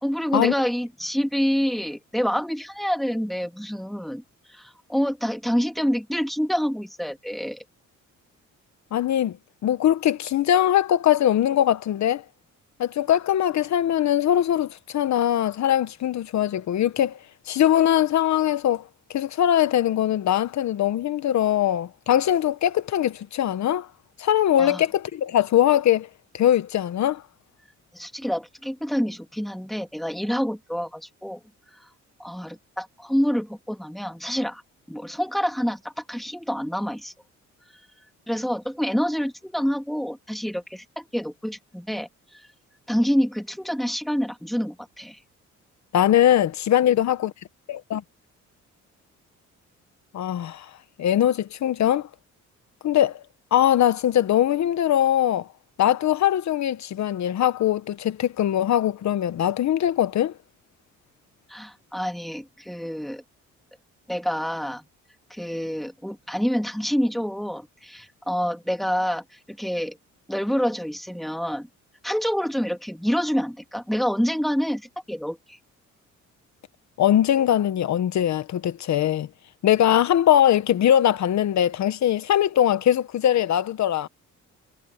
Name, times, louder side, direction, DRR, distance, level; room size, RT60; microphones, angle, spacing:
voice 1, 0.0-4.2 4.5-7.6 24.6-24.8 27.9-31.4 32.2-34.6 34.9-37.1 38.3-42.1 42.9-45.2 61.5-63.2 64.1-64.8 65.3-69.2 69.6-70.0 70.3-71.7 72.0-74.8 75.1-75.6, equal, ahead, 2.3 m, -27 dB
voice 2, 8.9-9.4 9.6-12.2 12.8-17.2 17.5-18.8 19.1-23.9 24.2-26.1 26.3-27.2 45.9-47.3 47.7-48.0 50.1-50.7 51.0-52.1 52.8-53.2 53.5-55.5 55.8-60.3 77.0-79.3 79.6-84.1, left 11 dB, 65° left, 1.2 m, -21 dB
cardioid pair, 90°, 30 cm